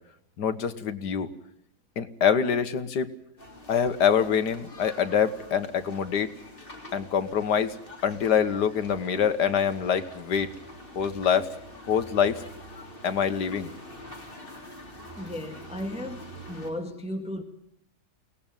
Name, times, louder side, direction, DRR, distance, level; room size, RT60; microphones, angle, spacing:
voice 1, 0.4-1.3 2.0-3.1 3.7-6.3 6.9-7.7 8.0-10.5 11.0-11.5 11.9-12.4 13.0-13.7, left 7 dB, 90° left, 1.9 m, -25 dB
sound 1, 3.4-16.7, left 1 dB, 30° left, 3.7 m, -46 dB
voice 2, 15.2-17.4, left 1 dB, 5° right, 1.7 m, -35 dB
23.0 x 18.5 x 9.2 m
omnidirectional pair, 1.7 m